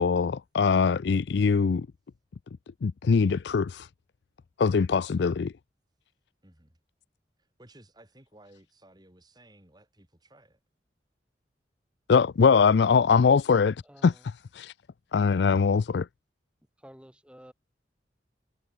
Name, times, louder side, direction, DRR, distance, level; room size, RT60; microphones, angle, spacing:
voice 1, 0.0-1.9 2.8-3.9 4.6-5.5 12.1-13.8 14.0-14.1 14.5-14.7 15.1-16.1, left 5 dB, 70° left, 0.4 m, -22 dB
voice 2, 6.4-6.8 7.4-10.6, right 1 dB, 20° right, 4.2 m, -56 dB
voice 3, 13.8-14.3 16.8-17.5, equal, 5° right, 6.0 m, -51 dB
head